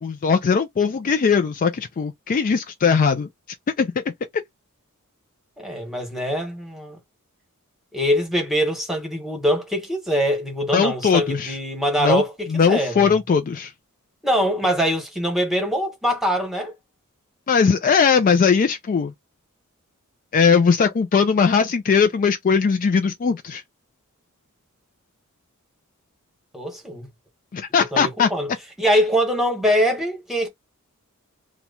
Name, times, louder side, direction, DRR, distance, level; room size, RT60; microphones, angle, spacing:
voice 1, 0.0-3.3 3.8-4.0 10.7-11.6 12.0-12.2 12.5-13.7 17.5-19.1 20.3-23.6 27.5-28.3, left 6 dB, 40° left, 0.3 m, -19 dB
voice 2, 5.6-7.0 7.9-13.2 14.2-16.7 26.5-27.1 27.9-28.5 28.8-30.5, equal, ahead, 1.1 m, -23 dB
3.0 x 2.1 x 3.9 m
head